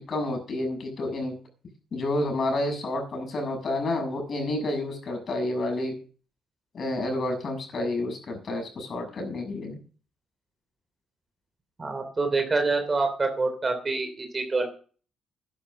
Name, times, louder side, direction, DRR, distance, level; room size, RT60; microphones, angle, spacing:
voice 1, 0.1-1.4 1.9-6.0 6.7-9.8, left 1 dB, 50° left, 4 dB, 7.0 m, -29 dB
voice 2, 11.8-14.7, right 3 dB, 30° right, 6 dB, 3.1 m, -26 dB
11.5 x 11.5 x 6.4 m, 0.40 s
cardioid pair, 90°, 0 cm